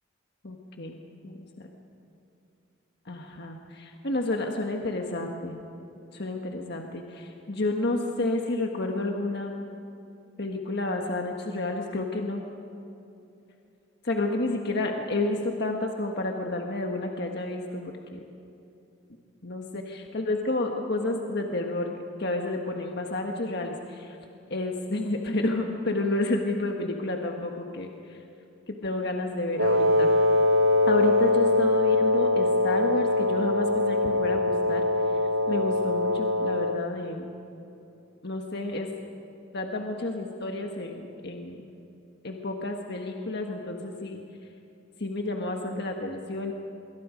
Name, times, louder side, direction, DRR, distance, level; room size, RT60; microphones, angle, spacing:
voice 1, 0.4-1.0 1.2-1.7 3.1-3.6 4.0-5.6 6.1-9.5 10.4-12.4 14.0-18.2 19.4-24.2 24.5-27.9 28.7-30.1 30.9-34.8 35.5-37.3 38.2-38.9 39.5-41.6 42.2-44.2 45.0-46.5, left 2 dB, 50° left, 2 dB, 1.5 m, -30 dB
Wind instrument woodwind instrument, 29.6-36.9, left 2 dB, 65° right, 0.8 m, -23 dB
26.0 x 23.5 x 5.2 m, 2.8 s
head